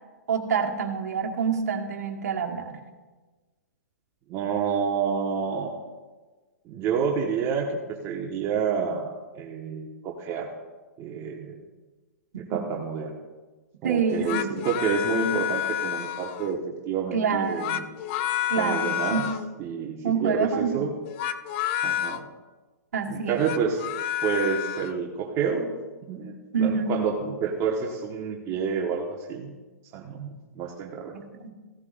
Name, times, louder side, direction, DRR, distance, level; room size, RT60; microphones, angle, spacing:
voice 1, 0.3-2.8 12.5-12.6 13.8-14.7 17.1-17.8 18.5-19.2 20.0-20.8 22.9-23.5 26.5-27.0 31.1-31.5, right 5 dB, 70° right, 2 dB, 1.5 m, -27 dB
voice 2, 4.3-5.7 6.7-10.5 11.0-11.6 12.5-13.2 13.8-16.6 16.8-17.8 18.6-19.2 19.6-20.9 21.8-22.2 23.1-23.9 24.2-25.7 26.1-29.5 29.9-30.3 30.5-31.1, right 6 dB, 30° right, 0 dB, 1.3 m, -28 dB
sound 1, 14.1-16.6 17.4-19.5 21.0-22.2 23.3-24.9, left 11 dB, 45° left, 0.6 m, -30 dB
16.0 x 13.0 x 2.6 m, 1.3 s
hypercardioid pair, 120°, 9 cm